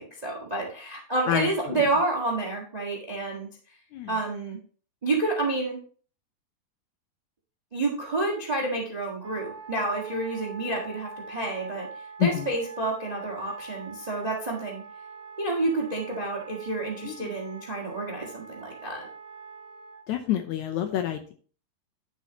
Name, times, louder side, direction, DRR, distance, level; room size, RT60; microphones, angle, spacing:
voice 1, 0.0-3.5 4.1-4.6 5.0-5.8 7.7-11.9 12.2-14.8 15.4-19.1, right 2 dB, 60° right, 0 dB, 0.4 m, -29 dB
voice 2, 1.3-1.8 3.9-4.2 12.2-12.5 17.0-17.3 20.1-21.3, left 11 dB, 75° left, 6 dB, 1.8 m, -28 dB
Wind instrument woodwind instrument, 9.2-20.0, right 4 dB, 15° right, 1.0 m, -44 dB
10.0 x 7.4 x 2.8 m, 0.42 s
omnidirectional pair, 3.9 m